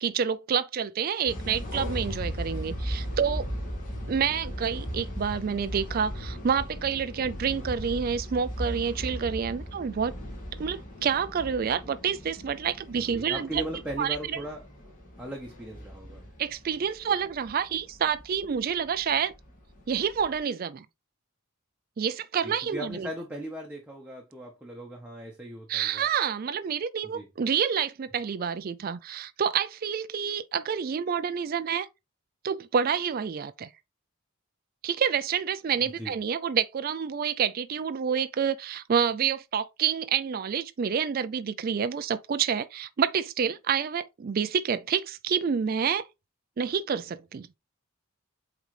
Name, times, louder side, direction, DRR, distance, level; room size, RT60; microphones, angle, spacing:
voice 1, 0.0-3.5 4.1-10.1 10.6-13.6 14.0-14.4 16.4-19.3 19.9-20.9 22.0-23.1 25.7-31.9 32.4-33.7 34.8-46.1 46.6-47.5, right 7 dB, 40° right, 0.3 m, -28 dB
sound 1, 1.3-20.4, equal, 40° left, 2.6 m, -38 dB
voice 2, 12.9-14.6 15.2-16.2 22.4-26.1 27.1-27.3 36.0-36.1, right 1 dB, 5° right, 1.1 m, -38 dB
8.0 x 3.9 x 3.3 m
head